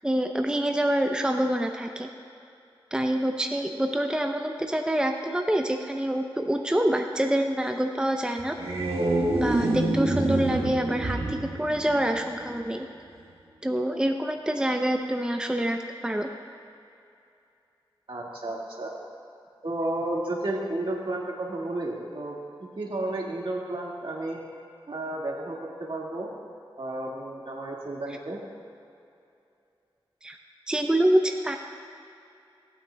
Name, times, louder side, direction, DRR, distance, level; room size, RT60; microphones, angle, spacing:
voice 1, 0.0-2.1 2.9-8.5 9.3-12.9 13.6-16.3 30.2-30.4 30.7-31.6, right 1 dB, 10° right, 4 dB, 0.6 m, -26 dB
sound 1, 8.4-12.6, right 2 dB, 85° right, 1.3 m, -27 dB
voice 2, 18.1-18.9 19.6-22.4 22.8-24.4 24.9-26.3 26.8-28.4, right 2 dB, 65° right, -3 dB, 1.9 m, -32 dB
18.0 x 8.6 x 2.3 m, 2.6 s
wide cardioid pair, 50°, 9 cm